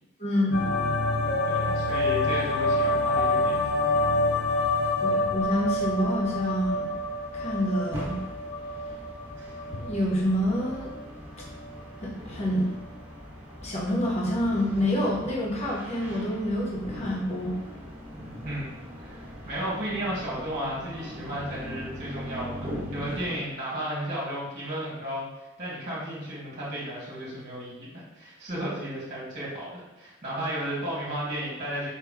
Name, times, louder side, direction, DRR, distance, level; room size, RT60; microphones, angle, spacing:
voice 1, 0.2-0.6 5.0-6.9 7.3-8.2 9.8-10.9 11.4-11.5 12.0-12.7 13.6-17.5, equal, 35° left, -4 dB, 0.8 m, -27 dB
sound 1, 0.5-11.0 11.4-12.1, left 2 dB, 55° left, 0.5 m, -27 dB
voice 2, 1.4-3.6 18.2-18.7 19.0-25.3 25.6-31.9, right 1 dB, 40° right, -6 dB, 1.3 m, -34 dB
sound 2, 5.4-23.4, equal, 20° right, 1.4 m, -41 dB
4.5 x 2.9 x 3.5 m, 0.99 s
head